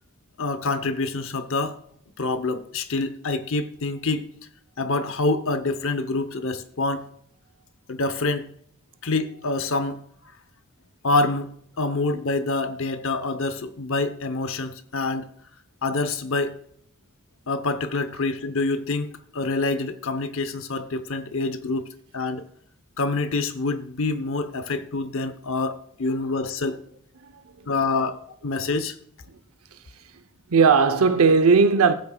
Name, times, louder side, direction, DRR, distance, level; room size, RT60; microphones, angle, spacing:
voice 1, 0.4-1.8 2.2-4.3 4.8-7.1 7.9-8.5 9.0-10.0 11.0-15.3 15.8-16.6 17.5-22.4 23.0-26.8 27.7-28.2 28.4-28.9, left 3 dB, 60° left, 0.8 m, -26 dB
voice 2, 27.2-27.7 30.5-31.9, right 5 dB, 70° right, 0.7 m, -18 dB
15.5 x 8.8 x 2.3 m
head